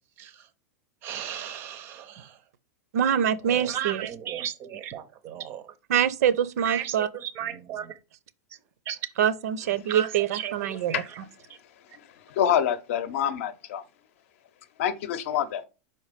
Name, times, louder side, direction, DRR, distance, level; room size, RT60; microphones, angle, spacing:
voice 1, 0.2-0.5 1.0-2.5 3.4-5.8 6.6-8.0 8.5-8.6 8.9-9.1 9.9-11.2 11.5-11.6 11.9-12.0, right 10 dB, 25° right, 0.5 m, -36 dB
voice 2, 2.9-4.0 5.9-7.1 9.2-11.0, right 9 dB, 70° right, 0.6 m, -24 dB
voice 3, 12.3-13.8 14.8-15.6, left 9 dB, 55° left, 0.7 m, -26 dB
5.5 x 4.3 x 5.0 m
supercardioid pair, 170°, 9 cm